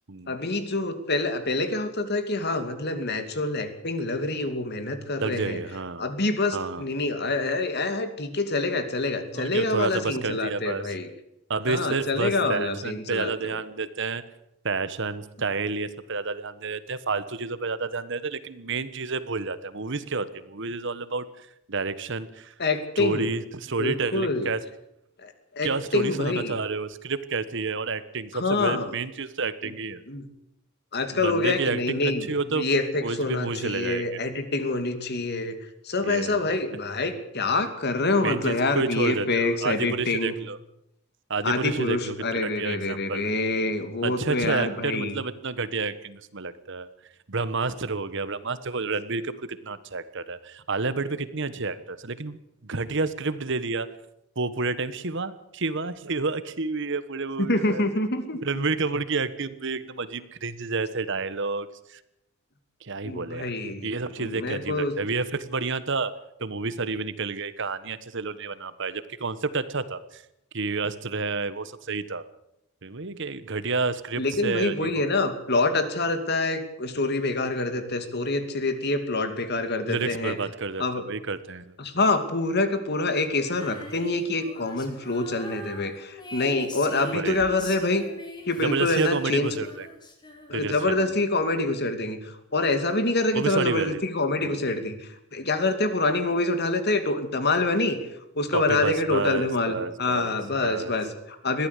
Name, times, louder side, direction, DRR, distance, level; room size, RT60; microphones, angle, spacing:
voice 1, 0.3-5.6 6.0-11.1 11.7-13.6 22.6-23.3 23.8-24.5 25.2-26.6 28.3-28.9 29.6-29.7 30.1-30.3 30.9-32.3 32.5-35.6 35.8-40.3 41.4-45.2 57.4-58.4 63.0-63.9 64.2-64.9 74.2-80.4 80.8-81.0 81.8-88.0 88.5-89.5 90.5-98.0 98.4-101.7, left 2 dB, 55° left, 9 dB, 2.6 m, -26 dB
voice 2, 5.2-6.0 6.5-6.8 9.3-10.8 11.5-14.2 14.6-21.3 21.7-22.5 23.0-24.6 25.6-30.0 31.1-32.7 33.0-34.2 36.0-36.4 38.2-40.6 41.3-43.3 44.0-46.9 47.3-53.9 54.4-57.8 58.4-62.0 62.8-63.5 63.8-66.1 66.4-70.2 70.5-72.2 72.8-75.1 79.8-81.7 87.1-87.4 88.6-89.9 90.5-91.0 93.3-94.0 94.4-94.6 98.5-100.4 100.6-101.0, right 4 dB, 60° right, 14 dB, 1.3 m, -30 dB
Female singing, 83.4-90.8, left 1 dB, 20° left, 3.7 m, -42 dB
21.5 x 15.0 x 8.4 m, 0.80 s
head